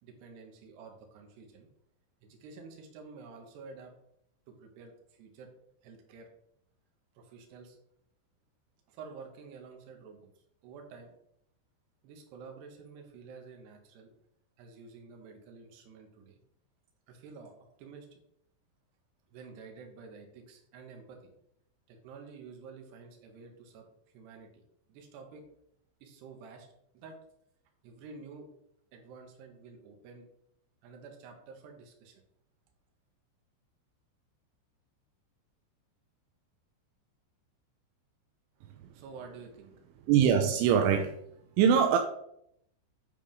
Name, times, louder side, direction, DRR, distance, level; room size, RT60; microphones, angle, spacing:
voice 1, 0.0-1.7 2.2-3.9 4.5-5.5 5.8-6.3 7.1-7.8 8.9-11.1 12.0-14.1 14.6-16.4 17.1-18.2 19.3-21.3 21.9-25.5 26.0-26.7 26.9-27.2 27.8-28.5 28.9-30.3 30.8-32.2 38.6-40.1, right 4 dB, 65° right, 3 dB, 3.3 m, -50 dB
voice 2, 40.1-41.2 41.6-42.0, right 8 dB, 85° right, 4 dB, 3.0 m, -23 dB
9.7 x 8.2 x 3.7 m, 0.73 s
omnidirectional pair, 5.8 m